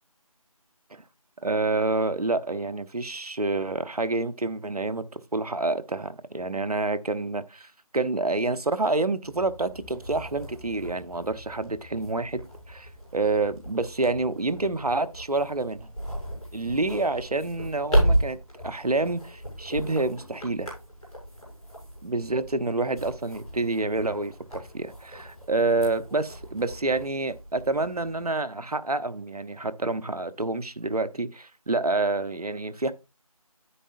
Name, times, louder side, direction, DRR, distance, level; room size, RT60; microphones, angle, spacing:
voice 1, 1.4-15.9 16.5-18.4 18.6-20.7 22.0-32.9, right 2 dB, 90° right, 1.0 m, -28 dB
sound 1, 9.2-28.3, equal, ahead, 2.5 m, -34 dB
9.9 x 8.6 x 2.6 m
figure-of-eight pair, 180°, 19 cm